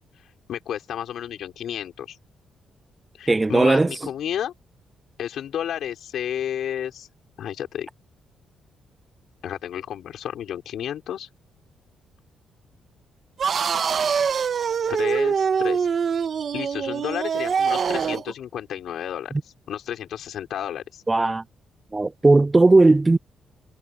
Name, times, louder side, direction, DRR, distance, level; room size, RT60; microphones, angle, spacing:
voice 1, 0.5-2.2 3.2-4.5 5.2-7.1 7.4-7.9 9.4-11.3 14.9-15.9 16.5-19.3 19.7-21.0, left 10 dB, 75° left, 5.5 m, -31 dB
voice 2, 3.3-3.9 19.3-19.4 21.1-21.4 21.9-23.2, right 2 dB, 20° right, 0.3 m, -17 dB
sound 1, 13.4-18.3, right 6 dB, 55° right, 1.9 m, -24 dB
cardioid pair, 85°, 0 cm